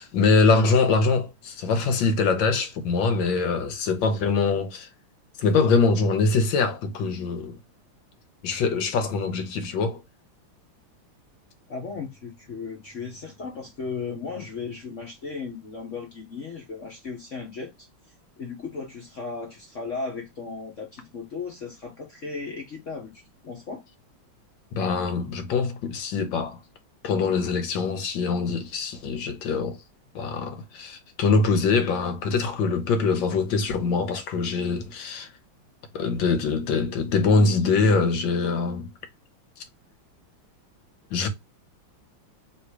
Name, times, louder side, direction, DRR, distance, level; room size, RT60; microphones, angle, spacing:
voice 1, 0.0-4.9 5.4-7.6 8.4-10.0 24.7-26.6 27.0-29.8 30.1-35.3 35.9-38.9 41.1-41.3, left 4 dB, 70° left, 1.5 m, -23 dB
voice 2, 11.7-17.9 18.4-23.8, left 4 dB, 50° left, 1.0 m, -36 dB
3.2 x 3.2 x 4.5 m
omnidirectional pair, 2.2 m